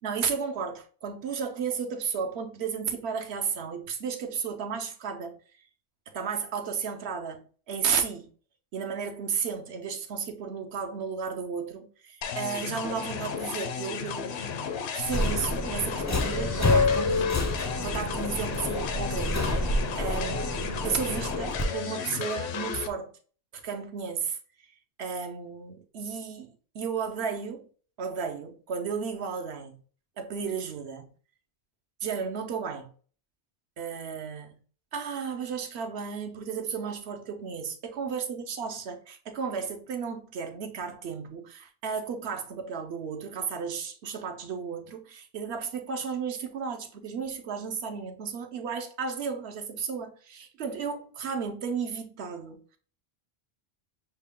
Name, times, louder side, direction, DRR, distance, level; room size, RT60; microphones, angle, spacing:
voice 1, 0.0-5.4 6.1-8.3 8.7-14.5 14.9-19.7 20.0-23.1 23.5-24.4 25.0-27.7 28.0-29.7 30.2-31.1 32.0-32.9 33.8-34.6 34.9-52.6, right 6 dB, 75° right, 1.0 m, -33 dB
sound 1, 12.2-22.9, left 6 dB, 75° left, 0.9 m, -34 dB
Subway metro underground, 15.0-21.6, left 2 dB, 30° left, 0.3 m, -28 dB
6.3 x 2.2 x 3.5 m
omnidirectional pair, 1.1 m